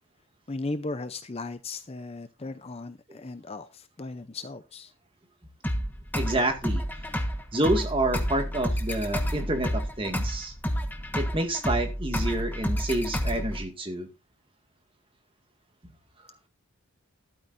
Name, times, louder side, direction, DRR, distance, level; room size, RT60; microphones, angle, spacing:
voice 1, 0.5-4.9, left 3 dB, 25° left, 0.6 m, -36 dB
sound 1, 5.6-13.6, equal, 10° left, 1.3 m, -30 dB
voice 2, 6.1-6.8 7.5-10.5 11.1-14.1, right 1 dB, 25° right, 2.0 m, -28 dB
13.5 x 12.0 x 2.6 m
head